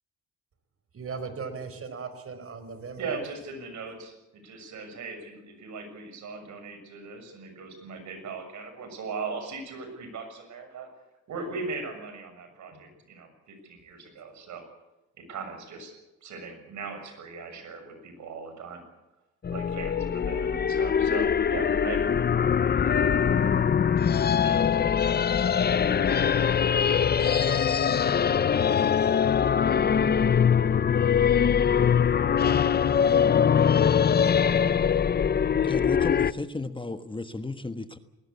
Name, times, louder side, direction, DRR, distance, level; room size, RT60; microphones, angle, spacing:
voice 1, 0.9-3.2, right 5 dB, 50° right, 10 dB, 4.6 m, -37 dB
voice 2, 3.0-10.9 11.3-14.6 15.2-15.9 16.2-18.8 19.5-22.0 24.4-24.8, right 4 dB, 70° right, 7 dB, 6.8 m, -39 dB
sound 1, 19.4-36.3, left 7 dB, 35° left, 0.7 m, -22 dB
sound 2, 25.4-35.7, left 5 dB, 85° left, 4.5 m, -44 dB
voice 3, 35.6-38.0, left 3 dB, 15° left, 9 dB, 1.3 m, -34 dB
20.5 x 19.5 x 8.4 m, 0.98 s
cardioid pair, 90°, 30 cm